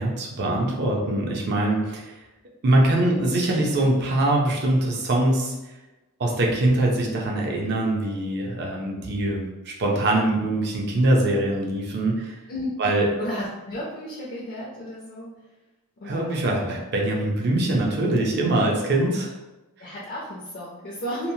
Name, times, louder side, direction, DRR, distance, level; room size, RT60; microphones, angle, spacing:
voice 1, 0.0-2.1 2.6-5.5 6.2-12.4 12.8-13.1 16.0-19.3 19.8-19.9, right 1 dB, 50° right, -1 dB, 0.5 m, -23 dB
voice 2, 12.5-15.3 16.0-16.4 18.8-19.1 19.8-21.3, equal, 45° left, -5 dB, 0.5 m, -34 dB
2.9 x 2.0 x 2.7 m, 1.1 s
head